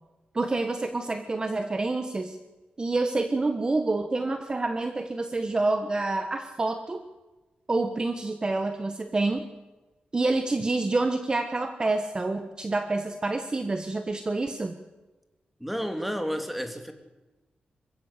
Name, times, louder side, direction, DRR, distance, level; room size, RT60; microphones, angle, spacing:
voice 1, 0.3-2.4 2.8-7.0 7.7-9.4 10.1-14.8, right 2 dB, 25° right, 8 dB, 1.3 m, -27 dB
voice 2, 15.6-16.9, equal, 5° right, 6 dB, 2.6 m, -31 dB
26.5 x 16.0 x 8.2 m, 1.1 s
wide cardioid pair, 125°, 3 cm